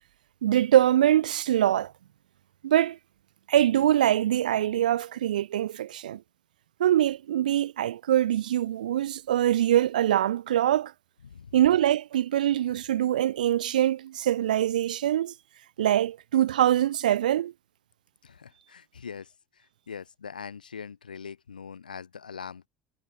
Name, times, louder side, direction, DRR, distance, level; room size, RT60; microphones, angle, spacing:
voice 1, 0.4-1.9 2.6-3.0 3.5-6.2 6.8-10.9 11.5-15.3 15.8-17.5, right 12 dB, 70° right, 1.6 m, -23 dB
voice 2, 11.3-11.6 18.2-19.3 19.9-22.7, left 6 dB, 80° left, 2.6 m, -42 dB
figure-of-eight pair, 65°, 5 cm